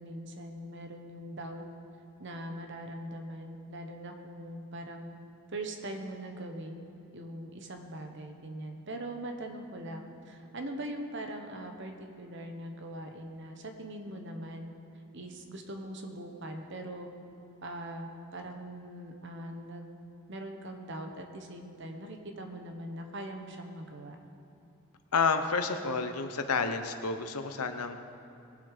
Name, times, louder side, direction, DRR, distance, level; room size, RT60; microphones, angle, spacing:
voice 1, 0.0-1.6 2.2-5.2 5.5-6.9 7.1-14.7 15.1-17.1 17.6-20.0 20.3-24.2, right 1 dB, 55° right, 4 dB, 1.2 m, -41 dB
voice 2, 25.1-28.0, left 4 dB, 90° left, 8 dB, 0.9 m, -30 dB
19.5 x 7.3 x 5.1 m, 2.9 s
head